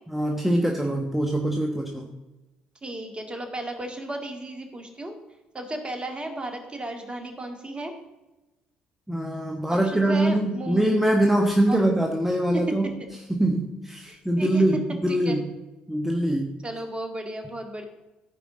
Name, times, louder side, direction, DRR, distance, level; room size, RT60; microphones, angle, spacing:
voice 1, 0.1-2.1 9.1-13.0 13.3-15.4 15.9-16.5, right 1 dB, 5° right, 1 dB, 1.2 m, -23 dB
voice 2, 2.8-5.2 5.5-7.9 9.7-10.9 11.7-11.8 14.0-14.6 15.1-15.4 16.6-17.8, right 1 dB, 25° right, 4 dB, 2.0 m, -34 dB
15.0 x 5.1 x 3.8 m, 1.0 s
hypercardioid pair, 55°, 4 cm